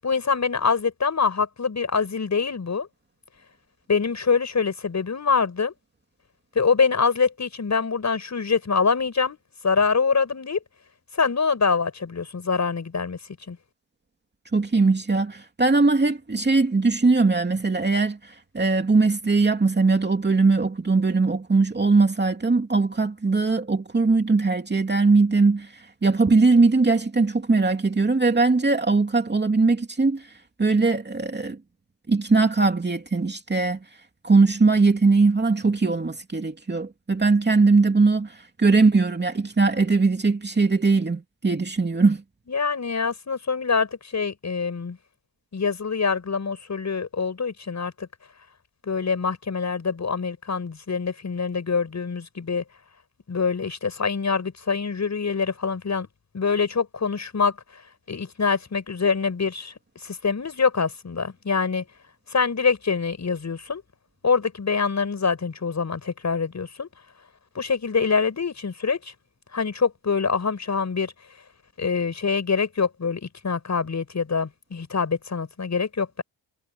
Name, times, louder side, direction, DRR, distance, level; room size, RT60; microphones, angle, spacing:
voice 1, 0.0-2.9 3.9-5.7 6.6-9.4 9.6-10.6 11.1-13.2 13.5-13.6 42.5-45.0 45.5-48.1 48.8-52.6 53.3-56.1 56.3-57.6 58.1-59.7 60.0-61.8 62.3-63.8 64.2-66.9 67.6-69.1 69.5-71.1 71.8-76.2, left 5 dB, 35° left, 7.0 m, -25 dB
voice 2, 14.5-30.3 30.6-31.6 32.1-33.8 34.2-42.2, right 3 dB, 20° right, 2.8 m, -20 dB
wide cardioid pair, 130°, 45 cm